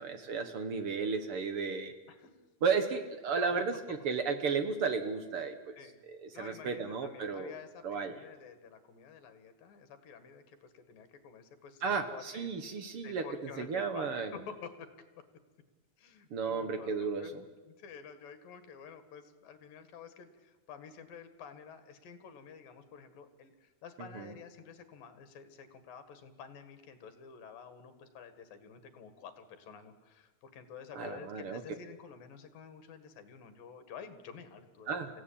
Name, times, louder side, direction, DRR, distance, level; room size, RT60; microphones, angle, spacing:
voice 1, 0.0-1.9 2.6-5.8 6.1-7.5 7.8-8.1 11.8-14.3 16.3-17.3 24.1-24.3 30.9-31.6 34.9-35.1, right 5 dB, 60° right, 8 dB, 1.5 m, -34 dB
voice 2, 3.3-4.0 5.8-6.0 6.3-12.5 13.0-14.9 16.0-17.3 17.6-35.2, left 6 dB, 70° left, 9 dB, 3.5 m, -50 dB
27.5 x 16.5 x 8.7 m, 1.3 s
omnidirectional pair, 4.2 m